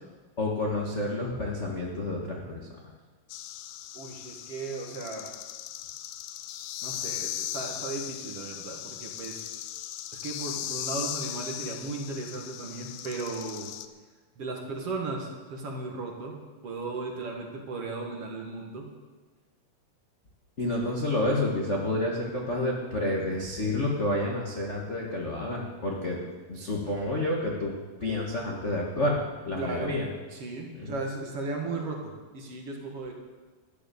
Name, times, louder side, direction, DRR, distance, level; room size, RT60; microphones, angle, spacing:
voice 1, 0.4-2.6 20.6-26.2 26.5-27.7 28.0-29.2 29.4-30.1 30.8-30.9, left 1 dB, 70° left, -2 dB, 0.6 m, -29 dB
sound 1, 3.3-13.9, left 12 dB, 85° left, 2.3 m, -38 dB
voice 2, 3.9-5.4 6.8-9.4 10.2-13.7 14.4-18.9 29.6-30.0 30.3-33.1, right 3 dB, 50° right, 1 dB, 2.2 m, -36 dB
13.0 x 10.0 x 6.9 m, 1.4 s
omnidirectional pair, 4.0 m